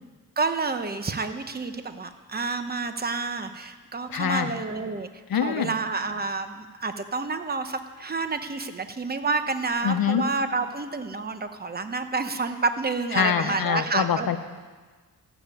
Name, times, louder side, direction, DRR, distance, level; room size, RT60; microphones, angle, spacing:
voice 1, 0.4-5.1 5.4-14.3, right 4 dB, 25° right, 8 dB, 1.0 m, -29 dB
voice 2, 4.1-4.5 5.3-5.7 9.8-10.2 13.1-14.4, left 8 dB, 70° left, 8 dB, 1.0 m, -24 dB
14.5 x 7.2 x 9.8 m, 1.4 s
cardioid pair, 85°, 36 cm